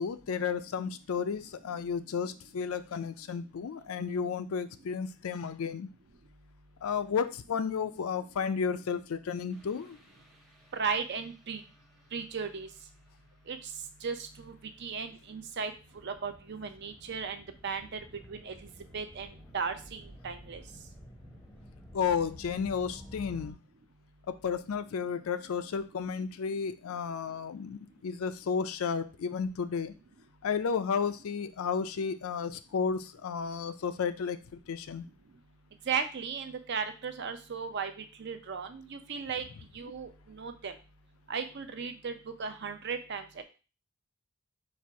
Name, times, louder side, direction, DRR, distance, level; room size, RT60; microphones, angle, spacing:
voice 1, 0.0-5.9 6.8-10.0 21.9-23.6 24.3-29.9 30.4-35.0, left 6 dB, 75° left, 11 dB, 0.4 m, -32 dB
sound 1, 9.5-23.5, equal, ahead, 0.7 m, -53 dB
voice 2, 10.7-11.6 12.1-12.7 13.5-13.6 14.0-14.5 14.8-15.7 16.0-18.0 18.3-18.6 18.9-20.6 35.9-39.4 39.7-40.7 41.3-42.1 42.4-43.4, right 5 dB, 50° right, 8 dB, 0.5 m, -36 dB
4.3 x 2.5 x 4.6 m, 0.34 s
head